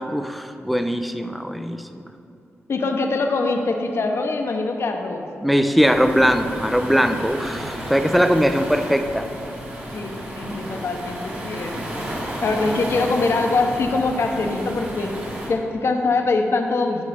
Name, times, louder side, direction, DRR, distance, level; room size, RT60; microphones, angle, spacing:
voice 1, 0.0-2.0 5.4-9.3, equal, ahead, 8 dB, 0.4 m, -20 dB
voice 2, 2.7-5.3 9.7-12.0 12.4-17.0, left 3 dB, 60° left, 3 dB, 0.8 m, -23 dB
Waves surf, 5.8-15.5, equal, 35° right, 1.7 m, -32 dB
12.5 x 5.2 x 3.4 m, 2.7 s
cardioid pair, 85°, 5 cm